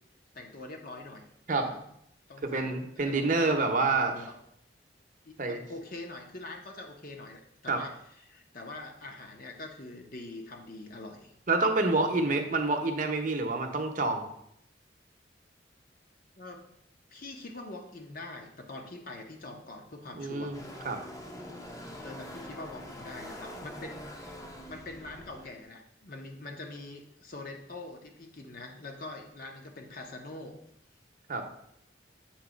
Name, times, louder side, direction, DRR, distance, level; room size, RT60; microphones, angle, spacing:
voice 1, 0.3-1.3 1.6-1.8 2.3-3.7 4.1-4.3 5.2-11.3 12.1-12.5 16.4-16.6 17.1-20.5 22.0-30.6, left 2 dB, 50° left, 3 dB, 0.7 m, -44 dB
voice 2, 2.4-4.1 5.4-5.6 7.7-7.8 11.5-14.3 20.1-20.6 20.8-21.0 31.3-31.5, right 3 dB, 45° right, 4 dB, 0.7 m, -27 dB
sound 1, 20.5-25.6, left 1 dB, 20° left, 0.6 m, -44 dB
7.2 x 2.8 x 5.0 m, 0.75 s
head